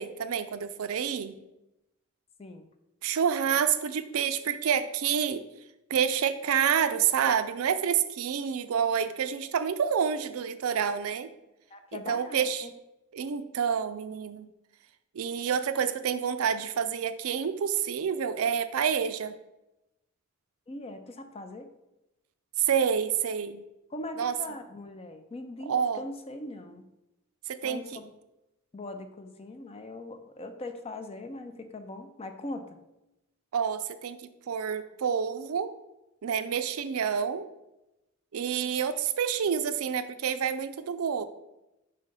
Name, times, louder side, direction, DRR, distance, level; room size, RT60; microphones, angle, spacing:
voice 1, 0.0-1.4 3.0-5.4 5.9-11.3 11.9-12.7 13.1-14.5 15.1-19.3 22.6-23.6 24.2-24.4 25.7-26.0 27.5-28.0 33.5-34.2 34.5-35.7 36.2-37.5 38.3-41.2, right 7 dB, 80° right, 11 dB, 0.4 m, -28 dB
voice 2, 11.7-12.7 20.7-21.7 23.9-26.8 27.6-28.1 28.7-32.7, left 2 dB, 30° left, 8 dB, 0.5 m, -41 dB
5.5 x 3.3 x 5.2 m, 0.93 s
head